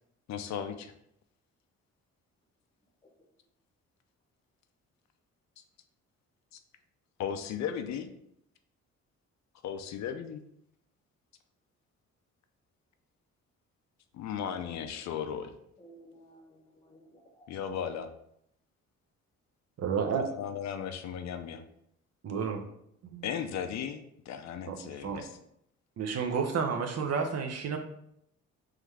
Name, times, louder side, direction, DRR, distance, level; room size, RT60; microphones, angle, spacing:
voice 1, 0.3-0.9 7.2-8.1 9.6-10.4 14.1-15.5 17.5-18.1 20.4-21.6 23.2-25.3, left 8 dB, 65° left, 7 dB, 0.5 m, -36 dB
voice 2, 15.8-17.5, right 1 dB, 15° left, 2 dB, 0.8 m, -56 dB
voice 3, 19.8-20.3 22.2-22.6 23.0-23.3 24.7-25.2 26.0-27.8, right 6 dB, 55° right, 6 dB, 0.6 m, -31 dB
3.7 x 3.2 x 3.3 m, 0.75 s
cardioid pair, 90°, 30 cm